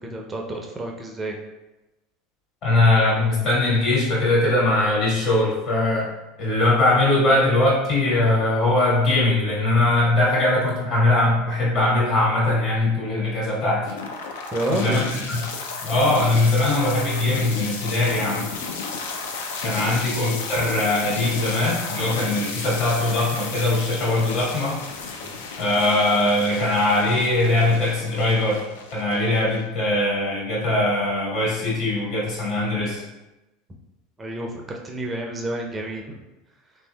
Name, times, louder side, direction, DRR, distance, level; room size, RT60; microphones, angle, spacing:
voice 1, 0.0-1.4 14.5-15.0 19.8-20.0 25.2-25.3 34.2-36.2, right 1 dB, 20° right, 0 dB, 0.5 m, -29 dB
voice 2, 2.6-6.1 6.4-13.9 14.7-15.4 15.8-18.5 19.6-24.8 25.6-28.6 28.9-33.0, left 2 dB, 55° left, -5 dB, 1.4 m, -21 dB
sound 1, 13.8-29.9, left 4 dB, 75° left, 0.4 m, -33 dB
3.1 x 2.6 x 2.2 m, 1.0 s
hypercardioid pair, 85°, 0 cm